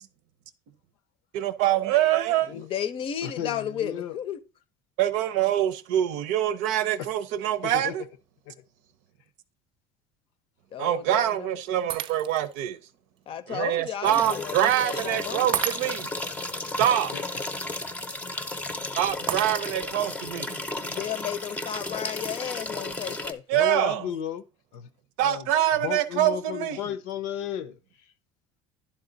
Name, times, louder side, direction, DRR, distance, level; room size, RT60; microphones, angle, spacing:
voice 1, 1.3-2.5 5.0-8.0 10.8-12.8 13.5-16.1 16.8-17.1 19.0-20.6 23.5-24.1 25.2-26.8, right 12 dB, 75° right, 0.7 m, -25 dB
voice 2, 2.5-4.4 10.7-11.6 13.3-15.5 20.8-23.4, left 9 dB, 45° left, 0.6 m, -33 dB
voice 3, 3.2-4.2 7.0-7.1 7.6-7.9 8.5-8.6 17.1-17.2 23.5-24.4 24.7-24.9 25.2-25.5 25.8-28.1, left 9 dB, 80° left, 0.7 m, -34 dB
Shatter, 11.9-12.6 13.2-13.3 15.5-16.3 19.3-20.0, right 11 dB, 40° right, 0.3 m, -32 dB
sound 1, 14.0-23.3, left 2 dB, 10° left, 0.6 m, -34 dB
11.0 x 3.7 x 3.9 m
cardioid pair, 120°, 13 cm